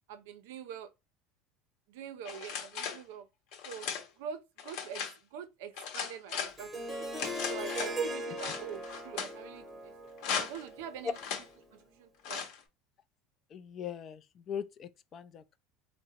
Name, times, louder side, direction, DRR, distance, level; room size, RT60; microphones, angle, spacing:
voice 1, 0.1-0.9 1.9-3.3 3.6-3.9 4.2-5.0 5.3-6.7 7.0-7.1 7.5-9.9 10.3-11.1 11.7-12.4, right 8 dB, 80° right, 0.5 m, -44 dB
sound 1, 2.2-3.0 3.5-4.1 4.6-5.2 5.8-6.6 7.2-8.0 8.4-9.3 10.2-10.7 11.1-11.5 12.2-12.6, left 7 dB, 65° left, 0.8 m, -37 dB
Harp, 6.6-11.5, right 1 dB, 20° right, 0.8 m, -39 dB
voice 2, 13.5-15.6, left 7 dB, 40° left, 0.4 m, -39 dB
3.6 x 2.0 x 2.8 m
supercardioid pair, 115°, 0 cm